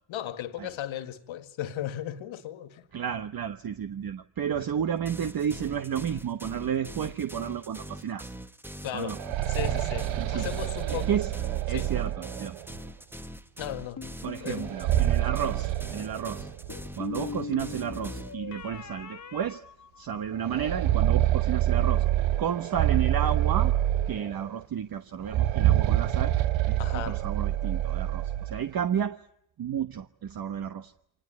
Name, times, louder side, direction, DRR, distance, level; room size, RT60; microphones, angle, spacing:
voice 1, 0.1-2.9 8.8-9.2 9.5-11.2 11.7-12.2 13.6-14.6 26.8-27.2, left 11 dB, 75° left, 2.0 m, -36 dB
voice 2, 2.9-8.3 8.9-9.2 10.2-10.5 10.9-11.3 11.7-12.6 14.2-16.5 17.0-19.6 20.0-22.0 22.4-23.7 24.1-26.3 26.7-29.2 29.6-30.9, right 8 dB, 50° right, 1.1 m, -32 dB
sound 1, 5.1-18.3, right 1 dB, 5° right, 1.2 m, -43 dB
sound 2, 9.0-12.8 14.5-16.7 17.1-17.2 18.0-18.1 18.6-18.8 20.4-24.5 25.2-28.6, right 13 dB, 70° right, 1.0 m, -26 dB
sound 3, 14.0-14.8 16.7-20.5, left 6 dB, 35° left, 1.6 m, -40 dB
25.0 x 19.5 x 9.6 m
cardioid pair, 80°, 47 cm